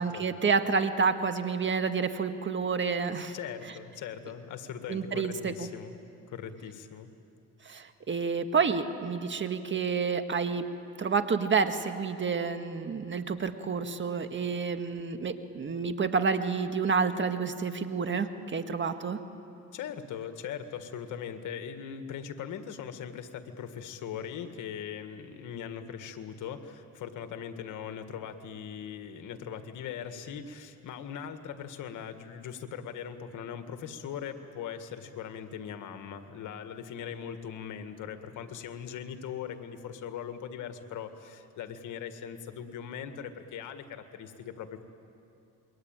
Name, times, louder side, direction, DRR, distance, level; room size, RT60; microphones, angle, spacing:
voice 1, 0.0-3.4 4.9-5.7 7.6-10.6 11.0-19.2, right 5 dB, 40° right, 8 dB, 1.7 m, -29 dB
voice 2, 3.3-6.0 6.3-7.1 19.7-44.8, left 8 dB, 80° left, 8 dB, 1.8 m, -40 dB
27.5 x 22.5 x 9.0 m, 2.7 s
cardioid pair, 90°, 30 cm